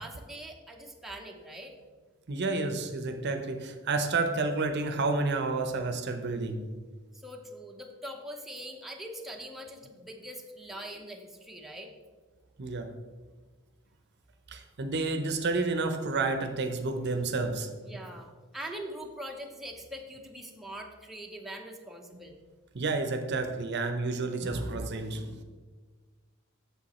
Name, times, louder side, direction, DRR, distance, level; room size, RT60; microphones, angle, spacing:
voice 1, 0.0-1.7 7.1-11.9 17.8-22.4, right 1 dB, ahead, 0 dB, 0.8 m, -42 dB
voice 2, 2.3-6.7 12.6-12.9 14.5-17.7 22.7-25.4, right 3 dB, 55° right, 7 dB, 0.7 m, -30 dB
7.6 x 7.0 x 4.2 m, 1.4 s
head